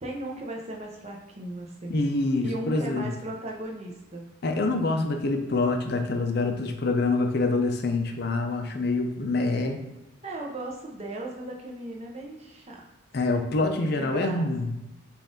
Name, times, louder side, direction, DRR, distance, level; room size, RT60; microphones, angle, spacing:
voice 1, 0.0-2.0 2.4-4.2 10.2-12.8 13.6-14.5, right 1 dB, 30° right, -1 dB, 0.8 m, -37 dB
voice 2, 1.9-3.1 4.4-9.8 13.1-14.8, left 3 dB, 50° left, 4 dB, 0.5 m, -26 dB
5.4 x 2.6 x 3.7 m, 0.98 s
head